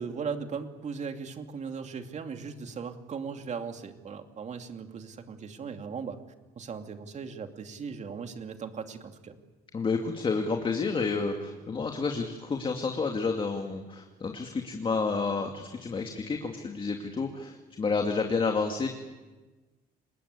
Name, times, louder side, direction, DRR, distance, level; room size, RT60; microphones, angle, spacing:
voice 1, 0.0-6.2 6.6-9.4, right 6 dB, 45° right, 6 dB, 2.6 m, -38 dB
voice 2, 9.7-18.9, left 4 dB, 30° left, 4 dB, 2.4 m, -30 dB
29.0 x 20.5 x 8.2 m, 1.2 s
cardioid pair, 110°, 17 cm